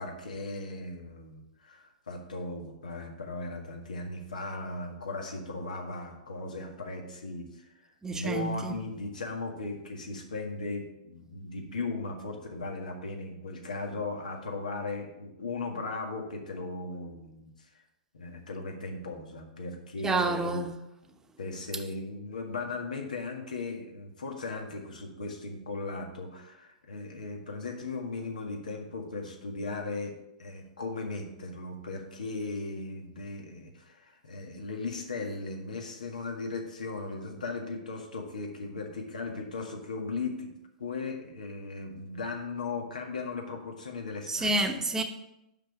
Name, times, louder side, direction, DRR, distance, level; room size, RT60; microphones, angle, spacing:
voice 1, 0.0-17.7 18.1-20.6 21.4-30.1 30.4-40.5 40.8-44.5, left 3 dB, 85° left, 1.7 m, -37 dB
voice 2, 8.0-8.8 20.0-20.8 44.3-45.0, right 2 dB, 10° right, 1.0 m, -29 dB
5.8 x 5.5 x 6.9 m
hypercardioid pair, 120°, 4 cm